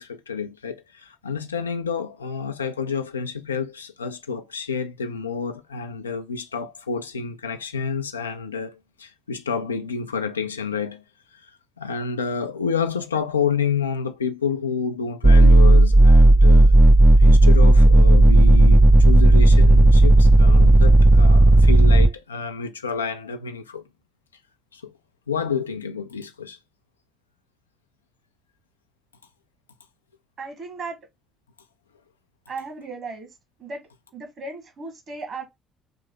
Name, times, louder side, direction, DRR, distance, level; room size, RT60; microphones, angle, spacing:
voice 1, 0.0-11.0 11.3-16.8 17.2-23.8 24.7-24.9 25.3-26.6, left 6 dB, 80° left, 0.3 m, -29 dB
sound 1, 15.2-22.1, right 1 dB, 20° right, 0.4 m, -12 dB
voice 2, 30.4-31.0 32.5-33.3 33.6-33.8 34.1-35.5, right 3 dB, 45° right, 1.3 m, -35 dB
3.3 x 2.6 x 3.5 m
figure-of-eight pair, 50°, 0 cm